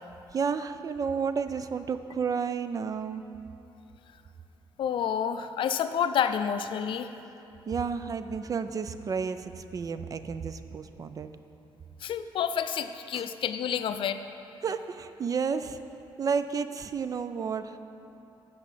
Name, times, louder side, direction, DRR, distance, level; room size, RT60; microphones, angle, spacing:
voice 1, 0.3-3.2 7.7-11.3 13.1-13.2 14.6-15.8 16.2-17.8, right 6 dB, 40° right, 11 dB, 0.4 m, -31 dB
voice 2, 4.8-7.1 12.0-14.2, left 8 dB, 65° left, 10 dB, 0.4 m, -29 dB
8.0 x 5.0 x 7.4 m, 3.0 s
cardioid pair, 95°, 9 cm